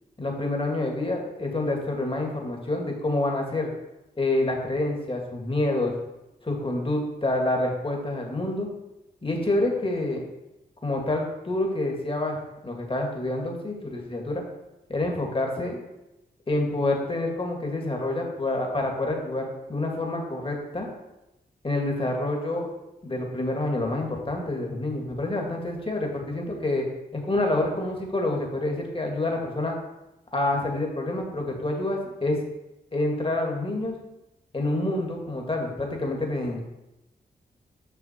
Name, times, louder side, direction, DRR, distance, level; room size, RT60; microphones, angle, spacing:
voice 1, 0.2-3.7 4.2-5.9 6.4-8.7 9.2-10.2 10.8-12.4 12.6-14.4 14.9-15.8 16.5-20.9 21.6-22.7 23.0-26.9 27.1-29.8 30.3-32.4 32.9-34.0 34.5-36.6, left 2 dB, 30° left, 1 dB, 2.0 m, -27 dB
6.8 x 5.9 x 4.4 m, 0.95 s
cardioid pair, 50°, 18 cm